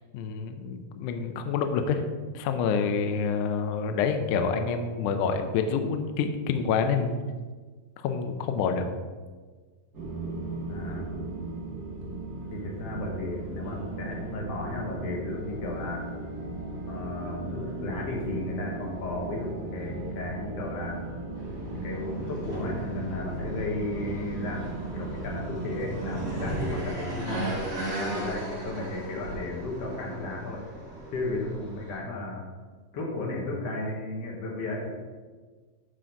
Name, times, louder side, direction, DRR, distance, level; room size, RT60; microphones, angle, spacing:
voice 1, 0.1-2.0 2.3-7.2 8.0-8.9, left 6 dB, 85° left, 7 dB, 1.7 m, -27 dB
sound 1, 9.9-26.8, right 2 dB, 70° right, 0.9 m, -37 dB
voice 2, 10.6-11.1 12.5-16.1 16.9-21.0 21.7-27.7 28.1-30.6 31.1-32.5 32.9-34.9, left 2 dB, 60° left, -1 dB, 1.7 m, -34 dB
sound 2, 21.3-32.0, right 1 dB, 25° right, 1.4 m, -37 dB
11.5 x 3.9 x 4.5 m, 1.4 s
omnidirectional pair, 4.3 m